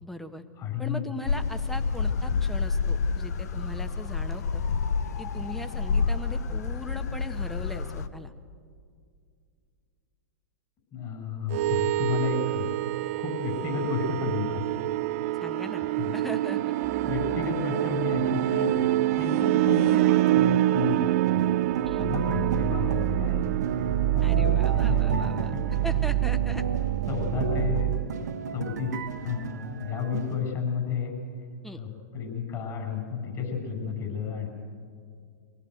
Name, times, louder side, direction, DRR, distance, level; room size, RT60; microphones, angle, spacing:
voice 1, 0.0-0.4 0.8-4.6 5.2-8.3 15.4-15.9 16.1-16.6 21.8-22.1 24.2-25.5 25.8-26.7 31.6-31.8, left 1 dB, ahead, 8 dB, 1.3 m, -39 dB
voice 2, 0.6-1.1 10.9-12.7 13.0-14.6 15.8-16.1 17.0-18.7 19.2-20.0 20.3-21.0 21.3-21.5 21.8-23.5 23.8-25.6 27.1-28.1 28.5-31.1 31.8-31.9 32.1-34.5, left 6 dB, 35° left, 2 dB, 6.9 m, -32 dB
sound 1, 1.3-8.1, left 5 dB, 65° left, 1.0 m, -28 dB
sound 2, 11.5-28.1, right 15 dB, 50° right, 0.5 m, -26 dB
sound 3, 16.8-30.4, right 5 dB, 75° right, 1.5 m, -35 dB
24.0 x 17.5 x 8.0 m, 2.2 s
hypercardioid pair, 105°, 9 cm